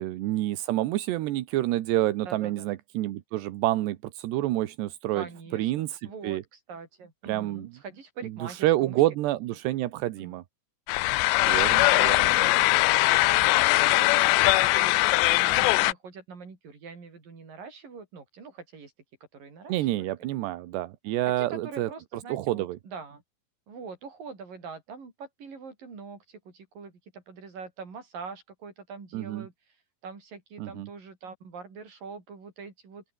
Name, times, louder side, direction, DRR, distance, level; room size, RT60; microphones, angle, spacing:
voice 1, 0.0-5.3 5.5-6.4 7.2-7.7 8.2-10.4 11.4-12.6 19.7-21.9 22.3-22.8 29.1-29.5 30.6-30.9, right 15 dB, 80° right, 3.2 m, -28 dB
voice 2, 2.3-2.7 5.1-9.0 10.2-10.4 11.4-18.9 19.3-20.1 21.4-23.2 23.7-29.5 30.0-33.0, right 5 dB, 50° right, 7.3 m, -43 dB
sound 1, 10.9-15.9, left 21 dB, 85° left, 2.8 m, -21 dB
open air
omnidirectional pair, 5.0 m